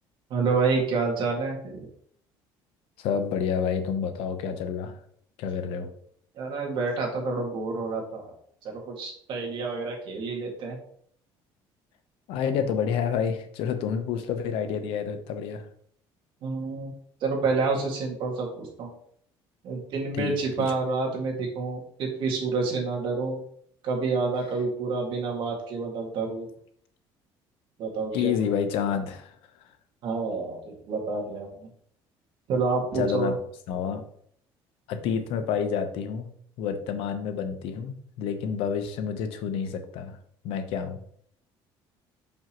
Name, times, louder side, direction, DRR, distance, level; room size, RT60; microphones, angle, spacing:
voice 1, 0.3-1.9 6.4-8.3 8.6-10.8 16.4-16.9 17.2-18.9 19.6-23.4 23.8-26.5 27.8-28.4 30.0-31.7 32.5-33.3, right 4 dB, 60° right, 0 dB, 2.0 m, -28 dB
voice 2, 3.0-5.0 5.4-5.9 12.3-15.7 20.1-20.7 28.1-29.3 32.9-33.3 33.7-34.0 34.9-36.3 36.6-40.2 40.4-41.0, left 7 dB, 80° left, 8 dB, 0.8 m, -29 dB
5.9 x 5.4 x 3.0 m, 0.64 s
cardioid pair, 125°, 9 cm